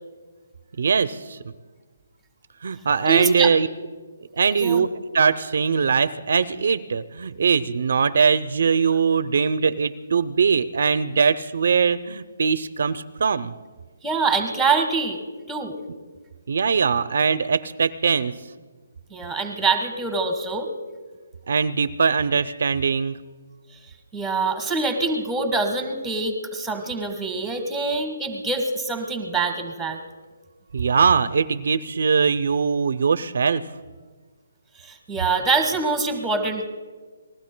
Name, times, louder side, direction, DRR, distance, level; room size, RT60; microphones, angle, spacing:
voice 1, 0.8-1.4 2.6-3.7 4.3-4.9 5.1-13.5 16.5-18.3 21.5-23.2 30.7-33.6, right 6 dB, 55° right, 12 dB, 0.5 m, -21 dB
voice 2, 3.0-3.5 4.5-4.9 14.0-15.8 19.1-20.7 24.1-30.0 34.8-36.7, right 3 dB, ahead, 6 dB, 1.3 m, -25 dB
29.0 x 20.5 x 2.2 m, 1.4 s
hypercardioid pair, 170°, 0 cm